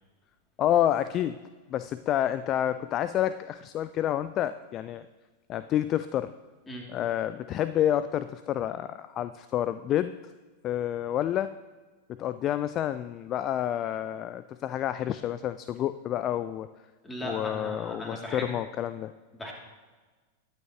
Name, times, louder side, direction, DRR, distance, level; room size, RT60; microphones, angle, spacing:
voice 1, 0.6-1.4 1.7-5.1 5.5-6.3 6.9-10.1 10.6-11.5 12.1-16.7 17.2-19.1, left 11 dB, 35° left, 13 dB, 0.3 m, -29 dB
voice 2, 17.0-18.5 19.3-19.5, equal, 10° left, -1 dB, 2.7 m, -37 dB
21.0 x 8.8 x 3.0 m, 1.3 s
figure-of-eight pair, 90°, 0 cm